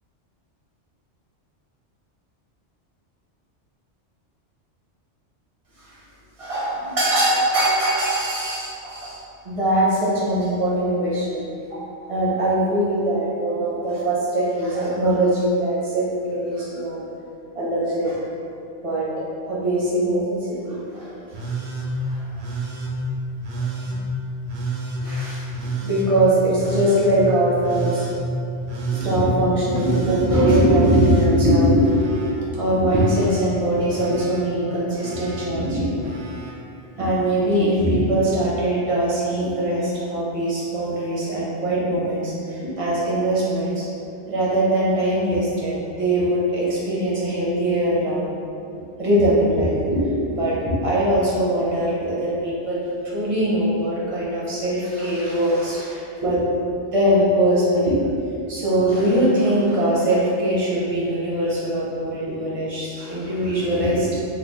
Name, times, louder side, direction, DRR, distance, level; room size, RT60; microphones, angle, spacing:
voice 1, 6.4-9.2 9.4-11.4 11.7-17.0 17.5-18.2 18.8-19.1 19.5-21.1 22.0-22.2 23.8-24.0 25.0-28.1 28.9-36.0 37.0-43.9 44.2-48.2 48.7-50.6 50.8-56.4 56.9-58.0 58.5-64.2, right 1 dB, 40° right, -7 dB, 0.6 m, -21 dB
Telephone, 21.3-21.9 22.4-22.9 23.4-24.0 24.5-25.0 25.5-26.1 26.6-27.1 27.6-28.2 28.7-29.2 29.7-30.3 30.8-32.3 32.6-33.4 33.9-34.4 35.0-35.5 36.0-36.5 37.7-37.8, right 4 dB, 65° right, 0.8 m, -30 dB
2.8 x 2.2 x 3.4 m, 2.6 s
omnidirectional pair, 1.2 m